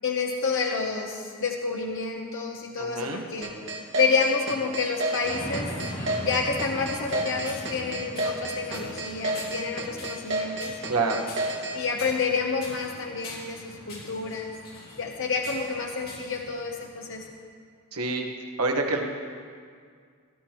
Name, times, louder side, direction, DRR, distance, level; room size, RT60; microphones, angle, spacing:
voice 1, 0.0-3.5 3.9-5.7 6.2-10.7 11.7-14.5 15.0-17.2, left 4 dB, 60° left, 1 dB, 0.9 m, -29 dB
voice 2, 2.8-3.3 10.9-11.3 17.9-18.3 18.6-19.0, right 3 dB, 70° right, 2 dB, 1.4 m, -27 dB
sound 1, 3.4-11.8, right 2 dB, 55° right, 2.0 m, -30 dB
sound 2, 5.2-17.3, left 1 dB, 45° left, 2.5 m, -41 dB
19.0 x 11.5 x 3.0 m, 2.1 s
head